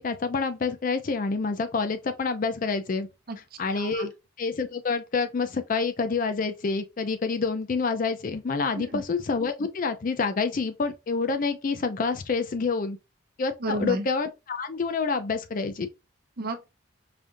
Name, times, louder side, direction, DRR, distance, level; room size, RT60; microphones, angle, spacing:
voice 1, 0.0-3.1 3.6-4.1 4.4-13.0 13.4-15.9, left 4 dB, 45° left, 0.4 m, -27 dB
voice 2, 3.3-4.1 8.7-9.0 13.6-14.1 16.4-16.7, right 1 dB, 50° right, 0.6 m, -32 dB
5.0 x 2.5 x 2.6 m
head